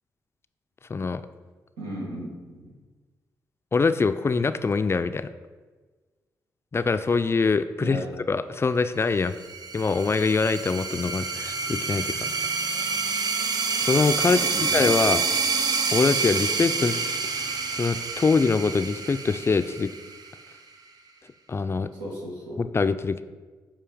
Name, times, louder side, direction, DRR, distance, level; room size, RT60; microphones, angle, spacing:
voice 1, 0.9-1.2 3.7-5.3 6.7-9.4 9.7-12.3 13.8-15.2 15.9-17.0 17.3-19.9 21.5-21.9 22.6-23.2, left 4 dB, 30° left, 11 dB, 0.3 m, -24 dB
voice 2, 1.8-2.7 7.8-8.0 14.3-14.9 22.0-22.6, equal, 90° right, -3 dB, 1.4 m, -35 dB
sound 1, 9.2-20.5, right 4 dB, 55° right, 0.6 m, -28 dB
6.9 x 2.8 x 5.0 m, 1.4 s
supercardioid pair, 45°, 8 cm